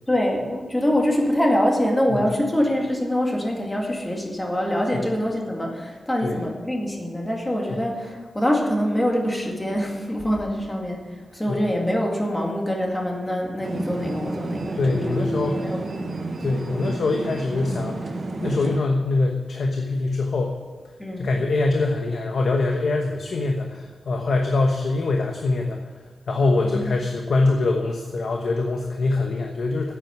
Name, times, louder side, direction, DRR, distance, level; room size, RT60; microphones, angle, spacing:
voice 1, 0.1-16.1 21.0-21.3 26.6-26.9, equal, 10° left, 0 dB, 2.1 m, -24 dB
sound 1, 13.6-18.8, right 2 dB, 45° right, 1.3 m, -30 dB
voice 2, 14.7-15.7 16.4-18.1 18.4-20.6 21.2-25.8 26.3-29.9, left 3 dB, 70° left, 2 dB, 1.1 m, -23 dB
9.5 x 8.6 x 9.3 m, 1.4 s
wide cardioid pair, 155°, 0 cm